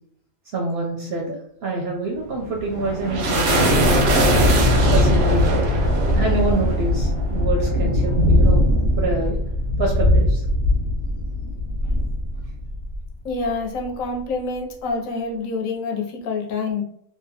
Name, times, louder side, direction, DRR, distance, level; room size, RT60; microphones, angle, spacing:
voice 1, 0.5-4.2 4.9-5.6 6.1-8.6 9.0-9.4 9.8-10.5, right 2 dB, 65° right, 0 dB, 0.6 m, -26 dB
sound 1, 2.3-13.1, equal, 85° right, 1.1 m, -19 dB
voice 2, 13.2-16.8, left 3 dB, 75° left, 1 dB, 0.9 m, -27 dB
2.7 x 2.1 x 2.7 m, 0.69 s
omnidirectional pair, 1.4 m